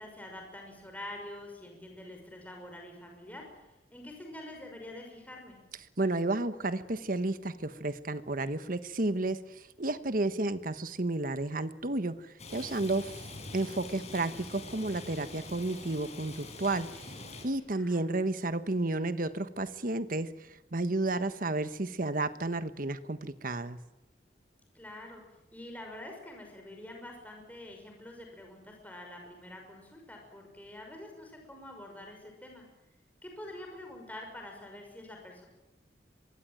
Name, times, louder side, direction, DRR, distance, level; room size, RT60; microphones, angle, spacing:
voice 1, 0.0-5.6 17.7-18.1 24.7-25.2 25.5-32.6 33.2-35.5, left 1 dB, 10° left, 2 dB, 5.9 m, -46 dB
voice 2, 6.0-13.2 13.5-16.9 17.4-23.8, right 2 dB, 50° right, 12 dB, 1.3 m, -32 dB
Rain, 12.4-17.5, left 2 dB, 40° left, 6.4 m, -45 dB
25.5 x 22.5 x 9.0 m, 0.98 s
head